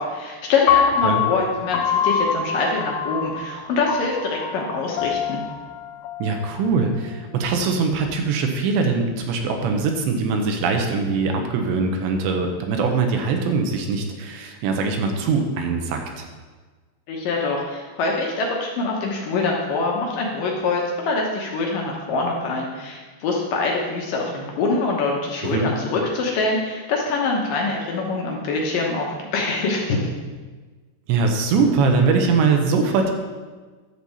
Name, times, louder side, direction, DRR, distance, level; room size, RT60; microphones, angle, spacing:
voice 1, 0.0-5.4 17.1-29.1 29.3-30.1, left 3 dB, 75° left, -1 dB, 2.1 m, -24 dB
Piano, 0.7-6.9, left 8 dB, 90° left, 2.8 m, -24 dB
voice 2, 6.2-16.3 25.4-25.7 31.1-33.1, right 4 dB, 80° right, 3 dB, 3.1 m, -22 dB
11.0 x 4.2 x 7.1 m, 1.4 s
omnidirectional pair, 5.0 m